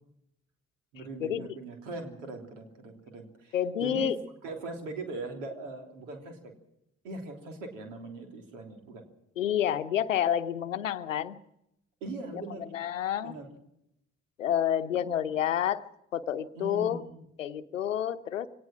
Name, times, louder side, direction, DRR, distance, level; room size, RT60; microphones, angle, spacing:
voice 1, 0.9-4.1 4.4-6.5 7.0-9.1 12.0-12.7 13.2-13.5 14.9-15.0 16.5-17.3, right 3 dB, 80° right, 4 dB, 3.3 m, -41 dB
voice 2, 3.5-4.2 9.4-11.4 12.3-12.4 12.7-13.4 14.4-17.0 17.4-18.5, left 10 dB, 85° left, 13 dB, 0.8 m, -29 dB
24.0 x 18.5 x 6.0 m, 0.79 s
figure-of-eight pair, 45°, 37 cm